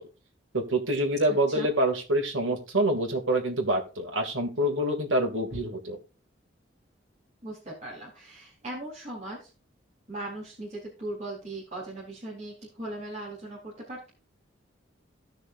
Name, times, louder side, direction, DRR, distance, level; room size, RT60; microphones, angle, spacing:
voice 1, 0.5-6.0, right 1 dB, 85° right, 2 dB, 2.6 m, -26 dB
voice 2, 1.3-1.7 7.4-9.5 10.1-14.1, right 1 dB, 35° right, -5 dB, 3.8 m, -39 dB
17.0 x 6.5 x 2.6 m, 0.33 s
head